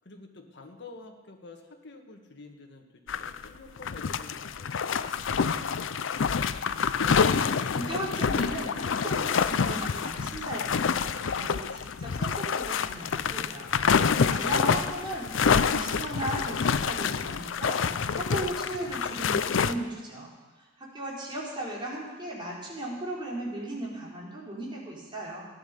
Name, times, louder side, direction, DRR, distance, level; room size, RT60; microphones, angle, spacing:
voice 1, 0.0-5.9, left 3 dB, 65° left, 4 dB, 1.7 m, -49 dB
sound 1, 3.1-3.5 3.8-19.7, left 6 dB, 85° left, 0.5 m, -27 dB
voice 2, 6.9-13.7 13.9-20.3 20.8-25.5, right 1 dB, 25° right, -5 dB, 4.3 m, -37 dB
14.5 x 10.5 x 6.8 m, 1.3 s
head